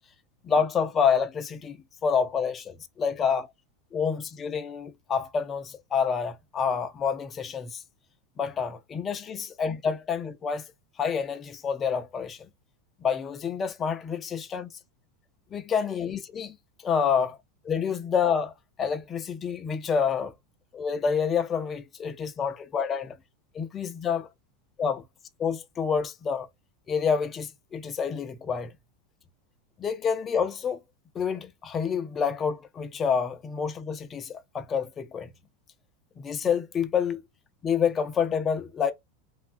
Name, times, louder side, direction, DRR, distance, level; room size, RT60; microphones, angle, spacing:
voice 1, 0.4-3.5 3.9-7.8 8.4-10.7 11.0-12.5 13.0-14.7 15.5-16.6 16.8-17.4 17.6-18.5 18.8-20.3 20.7-23.2 23.5-24.3 24.8-25.0 25.4-26.5 26.9-28.7 29.8-30.8 31.1-35.3 36.2-37.2 37.6-38.9, left 6 dB, 20° left, 0.4 m, -28 dB
3.1 x 2.2 x 2.4 m
supercardioid pair, 155°, 0 cm